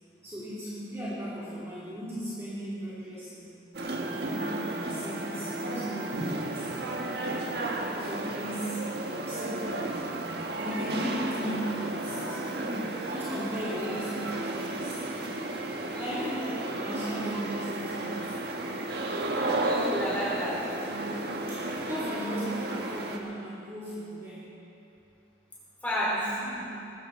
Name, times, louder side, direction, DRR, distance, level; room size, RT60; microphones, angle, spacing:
voice 1, 0.2-3.5 4.0-7.2 7.6-10.1 10.5-15.0 16.0-18.2 21.5-24.5 26.0-26.8, equal, 15° right, -11 dB, 3.3 m, -37 dB
sound 1, 3.7-23.2, right 2 dB, 65° right, 1.4 m, -33 dB
voice 2, 15.9-16.3 19.3-20.7 25.8-26.2, equal, 10° left, -8 dB, 4.9 m, -31 dB
20.0 x 15.0 x 4.3 m, 2.7 s
head